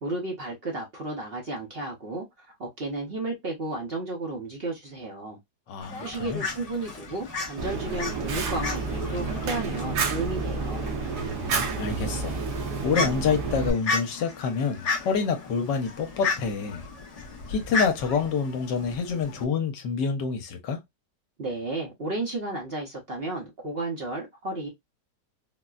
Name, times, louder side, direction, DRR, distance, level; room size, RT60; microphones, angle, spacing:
voice 1, 0.0-5.4 6.0-10.9 21.4-24.7, right 2 dB, 45° right, 0.8 m, -33 dB
voice 2, 5.7-6.4 11.3-12.4 12.8-16.8 17.5-20.8, left 5 dB, 75° left, 1.3 m, -27 dB
Fowl, 5.8-19.4, left 4 dB, 40° left, 0.5 m, -35 dB
Fire, 7.6-13.7, right 4 dB, 65° right, 1.3 m, -30 dB
4.1 x 2.1 x 2.3 m
omnidirectional pair, 2.0 m